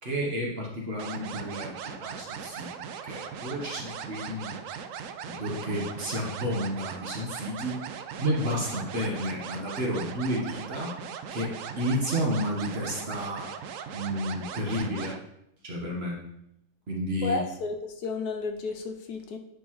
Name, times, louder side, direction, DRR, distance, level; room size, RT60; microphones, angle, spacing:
voice 1, 0.0-4.7 5.3-7.8 8.2-11.0 11.3-13.5 13.9-15.2 15.6-16.2 16.9-17.4, equal, 40° right, -2 dB, 1.4 m, -31 dB
sound 1, 1.0-15.2, right 7 dB, 70° right, 0.7 m, -39 dB
voice 2, 17.2-19.4, left 3 dB, 70° left, 4 dB, 1.1 m, -32 dB
9.9 x 4.5 x 3.1 m, 0.80 s
omnidirectional pair, 1.8 m